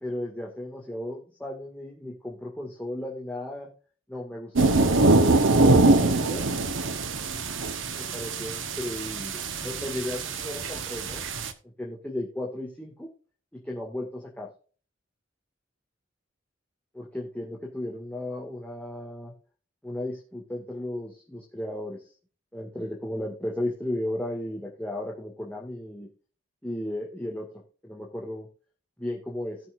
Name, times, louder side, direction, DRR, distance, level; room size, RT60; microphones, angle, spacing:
voice 1, 0.0-3.7 4.1-6.5 7.6-11.2 11.8-13.1 13.5-14.5 16.9-19.3 19.8-22.1 22.5-26.1 26.6-27.5 27.8-28.5 29.0-29.6, left 1 dB, 5° left, -2 dB, 2.0 m, -35 dB
sound 1, 4.6-11.5, right 2 dB, 75° right, 1.2 m, -23 dB
18.5 x 6.2 x 2.6 m, 0.38 s
head